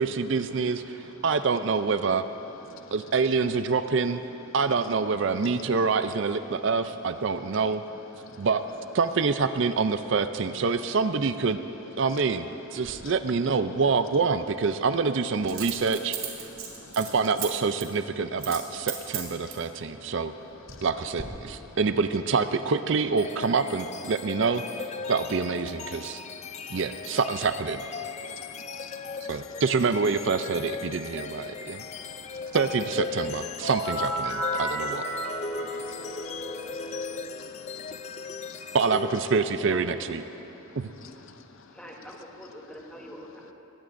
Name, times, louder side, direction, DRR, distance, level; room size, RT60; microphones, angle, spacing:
voice 1, 0.0-2.2 2.9-4.2 4.5-7.8 8.4-8.6 8.9-11.6 12.0-16.5 17.0-20.3 20.8-24.6 25.1-26.2 26.7-27.8 29.3-31.8 32.5-35.1 38.7-40.2 40.8-40.9, right 4 dB, 60° right, 11 dB, 0.4 m, -26 dB
Coin (dropping), 12.8-13.0 15.5-17.5 17.8-18.0 18.4-18.6 18.9-19.7 20.3-20.9 21.2-21.3, right 9 dB, 75° right, 2.2 m, -35 dB
voice 2, 16.5-17.0 19.4-20.1 20.7-20.9 21.7-21.8 26.1-26.8 28.2-29.3 31.5-32.6 35.2-38.8 40.5-41.7, left 5 dB, 65° left, 8 dB, 0.6 m, -51 dB
sound 1, 23.2-39.8, left 4 dB, 30° left, 0.3 m, -38 dB
sound 2, 33.6-37.2, equal, 90° left, 2.2 m, -33 dB
voice 3, 39.7-40.1 41.7-43.5, equal, 5° left, -2 dB, 1.4 m, -44 dB
21.0 x 18.0 x 2.6 m, 3.0 s
head